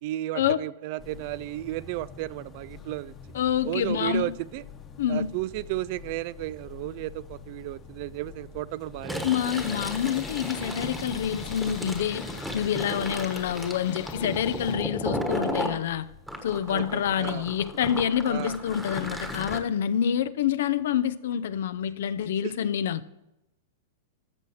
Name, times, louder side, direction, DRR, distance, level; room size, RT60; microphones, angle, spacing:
voice 1, 0.0-3.1 3.6-4.6 5.1-9.2 16.7-17.4 18.3-18.5 22.4-22.5, right 17 dB, 50° right, 0.3 m, -33 dB
sound 1, 1.0-19.6, left 6 dB, 20° left, 1.1 m, -46 dB
voice 2, 3.3-4.4 5.0-5.3 9.2-16.1 16.4-23.1, left 9 dB, 75° left, 0.6 m, -27 dB
Fill (with liquid), 8.9-15.8 16.3-19.6, equal, 5° right, 1.3 m, -35 dB
Tools, 9.5-14.9, left 11 dB, 50° left, 1.0 m, -45 dB
14.0 x 6.5 x 4.3 m
supercardioid pair, 145°, 0 cm